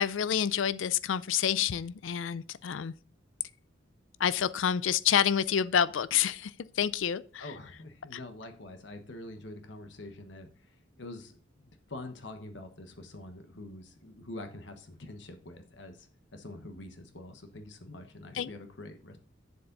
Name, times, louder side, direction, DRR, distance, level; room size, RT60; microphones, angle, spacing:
voice 1, 0.0-2.9 4.2-7.4 18.3-18.5, left 8 dB, 80° left, 0.4 m, -28 dB
voice 2, 7.4-19.2, left 2 dB, 65° left, 1.2 m, -45 dB
11.0 x 7.1 x 4.0 m
head